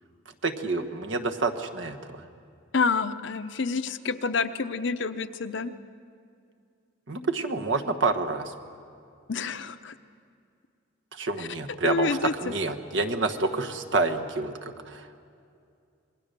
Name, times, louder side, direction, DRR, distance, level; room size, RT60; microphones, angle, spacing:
voice 1, 0.4-2.3 7.1-8.5 11.1-15.2, right 3 dB, 65° right, 5 dB, 1.3 m, -28 dB
voice 2, 2.7-5.7 9.3-9.9 11.8-12.3, left 4 dB, 60° left, 10 dB, 0.8 m, -28 dB
26.5 x 21.0 x 6.8 m, 2.4 s
head